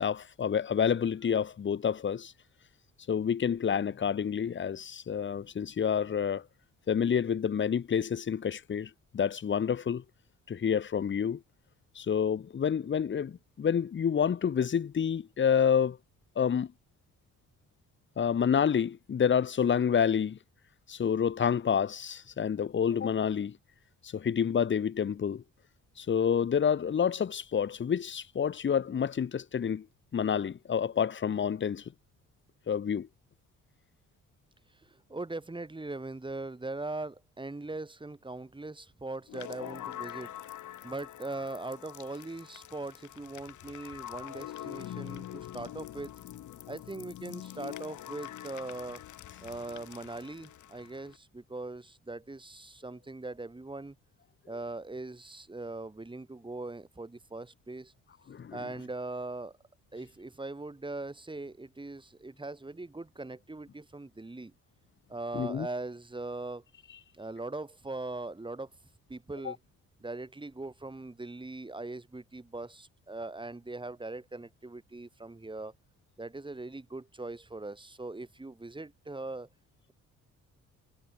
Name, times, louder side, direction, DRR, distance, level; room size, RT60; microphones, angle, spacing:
voice 1, 0.0-2.3 3.1-6.4 6.9-10.0 10.5-11.4 11.9-16.0 16.4-16.7 18.2-20.4 20.9-23.6 24.0-25.4 26.0-29.9 30.1-31.8 32.7-33.1 58.3-58.6 65.3-65.7 69.4-69.5, left 7 dB, 40° left, 1.3 m, -28 dB
voice 2, 35.1-40.3 40.8-46.1 46.7-49.0 49.4-54.0 54.5-57.9 58.5-59.5 59.9-64.5 65.1-66.6 67.2-68.7 69.1-69.6 70.0-75.7 76.2-79.5, right 2 dB, 15° right, 5.4 m, -40 dB
sound 1, 39.3-51.2, left 12 dB, 75° left, 5.6 m, -44 dB
cardioid pair, 90°, 30 cm